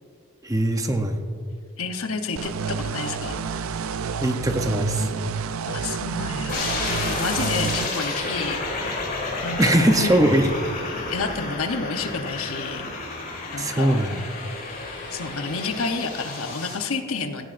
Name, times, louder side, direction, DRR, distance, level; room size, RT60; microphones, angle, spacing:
voice 1, 0.4-1.2 4.2-5.1 9.6-10.5 13.6-14.2, right 1 dB, 15° right, 5 dB, 0.7 m, -21 dB
voice 2, 1.8-3.4 5.7-9.0 9.4-10.1 11.1-12.9 13.5-14.0 15.1-17.5, left 4 dB, 70° left, 6 dB, 0.9 m, -30 dB
sound 1, 2.4-7.9, right 5 dB, 65° right, 0.4 m, -29 dB
sound 2, 6.5-16.7, left 3 dB, 40° left, 3.2 m, -31 dB
17.5 x 14.5 x 2.6 m, 2.2 s
head